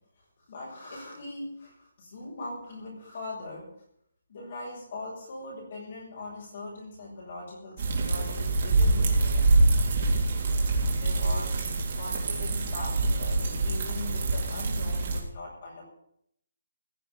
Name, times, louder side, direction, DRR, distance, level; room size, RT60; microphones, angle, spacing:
voice 1, 0.5-3.7 4.3-10.0 11.0-15.8, left 2 dB, 30° left, -3 dB, 6.4 m, -41 dB
sound 1, 7.8-15.2, right 2 dB, 30° right, 3.6 m, -25 dB
16.5 x 7.2 x 9.8 m, 0.73 s
hypercardioid pair, 180°, 0 cm